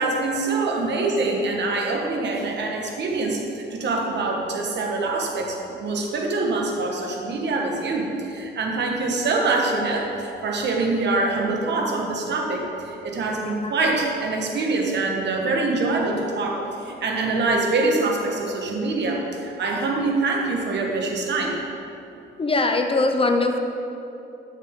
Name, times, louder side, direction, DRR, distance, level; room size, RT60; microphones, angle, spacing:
voice 1, 0.0-21.6, right 3 dB, 60° right, 1 dB, 1.4 m, -24 dB
voice 2, 22.4-23.6, left 2 dB, 30° left, 5 dB, 0.7 m, -21 dB
11.5 x 6.5 x 3.6 m, 2.8 s
cardioid pair, 90°, 20 cm